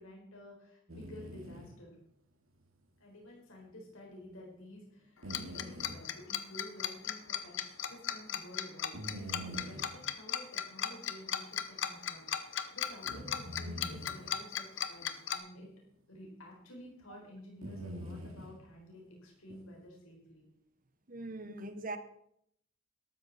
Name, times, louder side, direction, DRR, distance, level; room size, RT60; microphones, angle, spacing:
voice 1, 0.0-1.9 3.0-7.6 7.9-9.1 9.4-15.7 16.1-20.4, left 1 dB, 80° left, -1 dB, 4.5 m, -51 dB
sound 1, 0.9-1.7 5.2-6.0 8.9-9.9 13.0-14.3 16.2-16.3 17.6-18.5 19.5-19.6, equal, 85° right, 2.4 m, -44 dB
Tick-tock, 5.3-15.4, left 9 dB, 60° left, 0.9 m, -36 dB
voice 2, 21.1-22.0, right 2 dB, 40° right, 10 dB, 1.1 m, -41 dB
13.0 x 13.0 x 4.2 m, 0.70 s
head